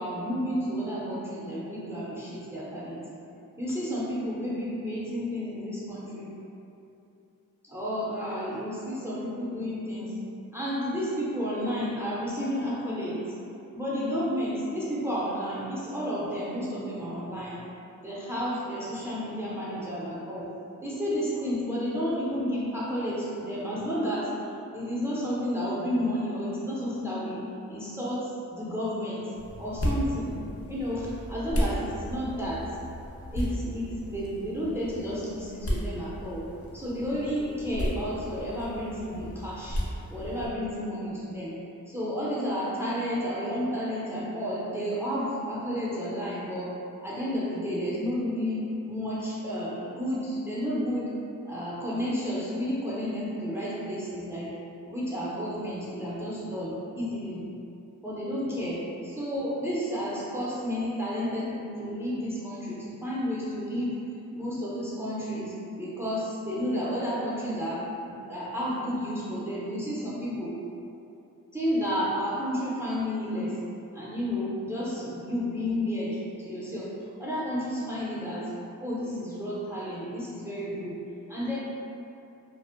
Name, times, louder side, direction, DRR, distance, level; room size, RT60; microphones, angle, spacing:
voice 1, 0.0-3.1 3.6-6.3 7.6-10.2 10.5-13.3 13.7-17.6 18.0-20.5 20.8-24.3 24.7-27.4 27.7-29.3 29.6-30.3 30.7-32.6 33.3-36.5 36.7-39.8 40.1-41.6 41.9-46.7 47.0-51.1 51.5-54.5 54.8-57.5 58.0-63.9 64.3-70.6 71.5-73.5 73.9-76.9 77.2-78.5 78.8-81.0 81.3-81.6, equal, 5° right, -7 dB, 0.5 m, -31 dB
sound 1, 29.3-40.5, equal, 45° left, 0.6 m, -34 dB
2.5 x 2.0 x 2.4 m, 2.8 s
cardioid pair, 45°, 34 cm